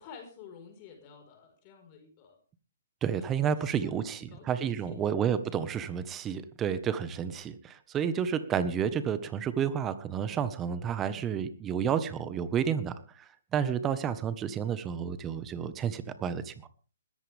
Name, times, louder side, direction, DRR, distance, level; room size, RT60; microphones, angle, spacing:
voice 1, 0.0-2.4 3.4-5.1, left 6 dB, 35° left, 4 dB, 5.2 m, -51 dB
voice 2, 3.0-16.7, right 8 dB, 20° right, 13 dB, 1.4 m, -31 dB
20.5 x 14.0 x 3.6 m, 0.38 s
hypercardioid pair, 140°, 0 cm